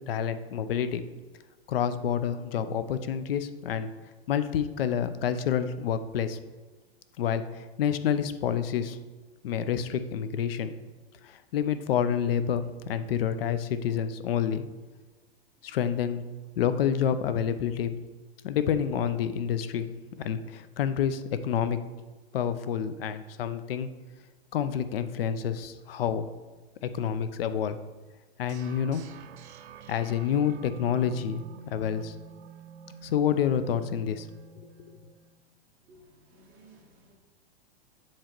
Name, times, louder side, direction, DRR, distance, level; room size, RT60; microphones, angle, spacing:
voice 1, 0.1-1.0 1.7-3.9 4.3-6.4 7.2-9.0 9.4-10.8 11.2-14.7 15.6-16.2 16.6-17.9 18.4-19.9 20.2-21.8 22.3-23.9 24.5-26.3 26.8-27.8 28.4-29.0 29.9-32.1 33.0-34.3 34.6-34.7, left 8 dB, 60° left, 12 dB, 0.5 m, -28 dB
sound 1, 28.5-35.4, right 7 dB, 85° right, 0.6 m, -48 dB
voice 2, 35.9-37.1, right 1 dB, 5° right, -5 dB, 0.5 m, -56 dB
7.3 x 3.0 x 4.4 m, 1.3 s
supercardioid pair, 170°, 33 cm